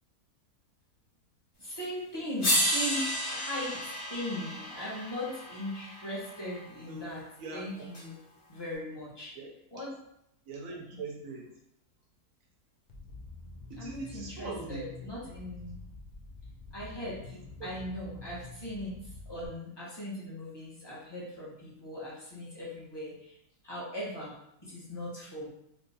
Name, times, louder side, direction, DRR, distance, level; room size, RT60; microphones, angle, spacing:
voice 1, 1.6-3.8 4.1-7.2 7.5-8.2 8.5-9.3 9.7-9.9 13.8-15.8 16.7-17.4 17.6-23.3 23.6-24.4 24.6-25.5, left 1 dB, 20° left, -7 dB, 0.9 m, -39 dB
sound 1, 1.8-1.9 2.4-6.6 7.9-8.0, equal, 40° left, 1.0 m, -32 dB
voice 2, 7.4-7.9 9.4-9.5 10.5-11.5 13.7-14.9 17.3-17.7, right 3 dB, 70° right, 0 dB, 0.9 m, -42 dB
sound 2, 12.9-19.5, left 3 dB, 85° left, 0.4 m, -47 dB
3.5 x 2.8 x 2.7 m, 0.78 s
omnidirectional pair, 1.7 m